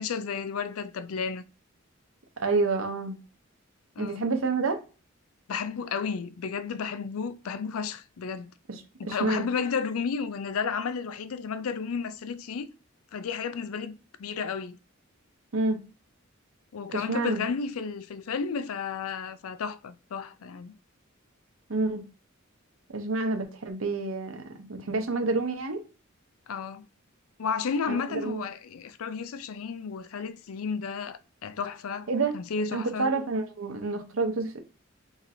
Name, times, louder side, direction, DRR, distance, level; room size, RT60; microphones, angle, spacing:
voice 1, 0.0-1.4 4.0-4.2 5.5-8.5 9.0-12.7 13.1-13.9 14.2-14.8 16.7-20.7 26.5-26.8 27.4-33.1, left 5 dB, 90° left, 0.4 m, -32 dB
voice 2, 2.4-3.1 4.0-4.8 8.7-8.8 9.0-9.5 15.5-15.8 16.9-17.4 21.7-22.0 22.9-24.4 24.7-25.8 27.9-28.4 32.1-32.3 32.7-34.6, right 3 dB, 75° right, 0.8 m, -28 dB
4.1 x 2.9 x 2.6 m
head